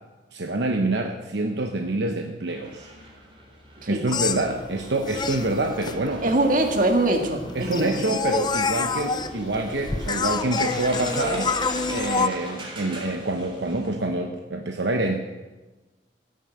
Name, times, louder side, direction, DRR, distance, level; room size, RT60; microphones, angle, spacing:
voice 1, 0.3-2.9 3.9-6.4 7.5-15.1, right 2 dB, 70° right, 3 dB, 1.0 m, -26 dB
sound 1, 2.5-14.0, right 1 dB, 30° right, 3.7 m, -41 dB
sound 2, 4.1-12.3, left 4 dB, 25° left, 0.6 m, -28 dB
voice 2, 6.2-8.0, right 1 dB, 50° right, 4 dB, 1.9 m, -22 dB
16.0 x 7.8 x 7.8 m, 1.2 s
head